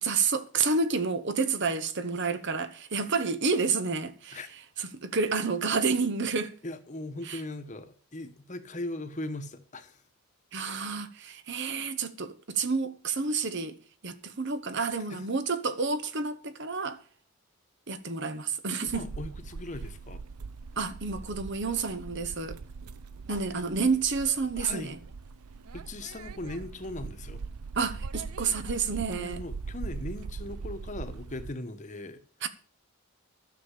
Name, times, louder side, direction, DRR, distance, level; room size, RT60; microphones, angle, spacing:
voice 1, 0.0-4.4 4.8-6.5 7.3-7.4 10.5-13.8 14.0-17.0 17.9-19.1 20.8-22.6 23.3-25.0 27.8-29.4 32.4-32.5, right 4 dB, 50° right, 1.1 m, -29 dB
voice 2, 6.6-10.0 15.1-15.2 18.8-20.2 23.3-23.4 24.6-24.9 25.7-27.4 29.2-32.2, left 2 dB, 35° left, 1.1 m, -39 dB
sound 1, 18.9-31.5, right 4 dB, 80° right, 0.6 m, -41 dB
11.5 x 6.9 x 8.2 m
head